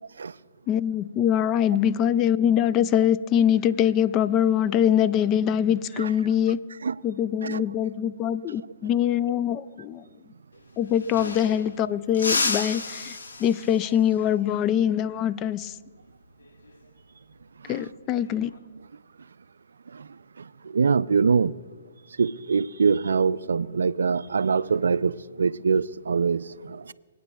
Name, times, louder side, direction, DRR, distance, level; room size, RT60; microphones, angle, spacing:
voice 1, 0.7-6.6 7.0-10.0 10.8-15.7 17.7-18.5, left 10 dB, 25° left, 0.3 m, -23 dB
sound 1, 10.5-10.6 10.8-11.8 12.1-13.9 16.4-16.7 18.1-18.6, left 3 dB, 85° left, 1.5 m, -31 dB
voice 2, 20.4-21.5 22.2-26.9, right 5 dB, 85° right, 0.3 m, -24 dB
26.0 x 8.9 x 2.3 m
hypercardioid pair, 140°, 0 cm